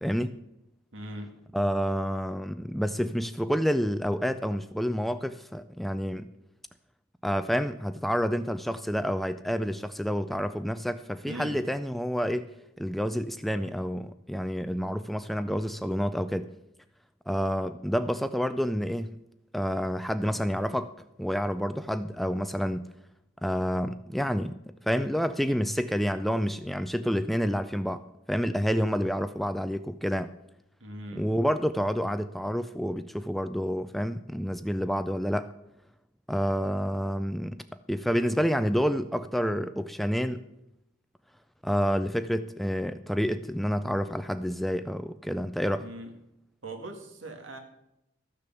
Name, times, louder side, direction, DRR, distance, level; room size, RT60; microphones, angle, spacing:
voice 1, 0.0-0.4 1.5-6.3 7.2-16.5 17.3-19.1 19.5-20.9 21.2-22.9 23.4-24.6 24.8-28.0 28.3-30.3 31.2-35.5 36.3-40.4 41.6-45.9, equal, ahead, 11 dB, 0.3 m, -29 dB
voice 2, 0.9-1.4 11.2-11.6 30.8-31.3 45.8-46.1 46.6-47.6, right 1 dB, 75° right, 4 dB, 1.9 m, -40 dB
13.5 x 6.7 x 6.9 m, 0.84 s
head